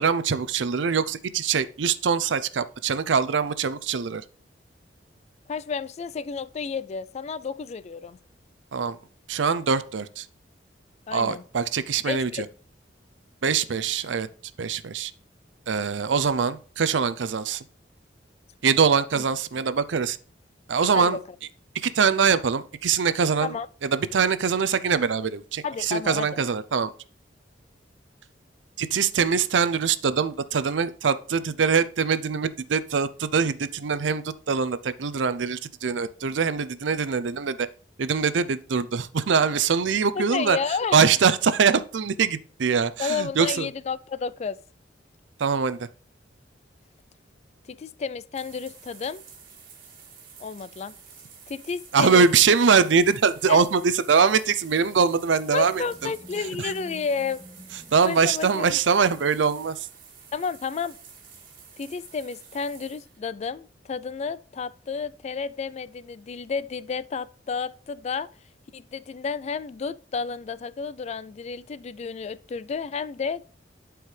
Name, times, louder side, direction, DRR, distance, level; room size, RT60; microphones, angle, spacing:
voice 1, 0.0-4.2 8.7-9.0 9.3-10.3 11.1-12.5 13.4-14.3 14.6-15.1 15.7-17.6 18.6-20.2 20.7-21.2 21.8-23.6 23.8-26.9 28.8-37.7 38.0-40.6 40.9-43.7 45.4-45.9 51.9-56.1 56.6-56.7 57.9-59.9, right 6 dB, 80° right, 0.5 m, -23 dB
voice 2, 5.5-8.2 11.1-11.4 12.1-12.5 19.2-19.3 20.9-21.2 23.4-23.7 25.6-26.3 40.1-41.0 43.0-44.6 47.7-49.2 50.4-50.9 51.5-52.3 53.5-53.7 55.5-57.4 58.0-58.8 60.3-61.0 61.8-68.3 68.7-73.5, left 5 dB, 35° left, 0.3 m, -31 dB
sound 1, 48.3-63.3, right 6 dB, 50° right, 2.0 m, -49 dB
Animal, 55.2-59.2, equal, 15° right, 2.3 m, -49 dB
11.5 x 4.6 x 3.3 m
head